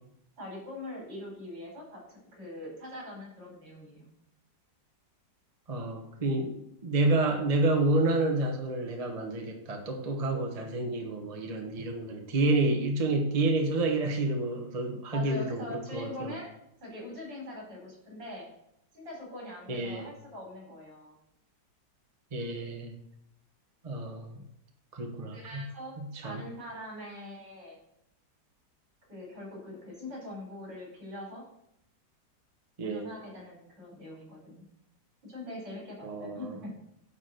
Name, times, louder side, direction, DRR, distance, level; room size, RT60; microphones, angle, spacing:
voice 1, 0.4-4.1 14.9-16.5 16.8-18.5 18.9-21.2 24.2-24.4 25.3-27.8 29.1-31.4 32.8-34.6 35.2-36.8, left 1 dB, 75° right, -3 dB, 5.3 m, -43 dB
voice 2, 5.7-16.3 19.7-20.1 22.3-22.9 23.8-24.4 24.9-25.6 26.0-26.4 32.8-33.1 36.0-36.6, right 2 dB, 25° right, 2 dB, 1.1 m, -29 dB
10.0 x 4.7 x 6.6 m, 0.77 s
omnidirectional pair, 2.0 m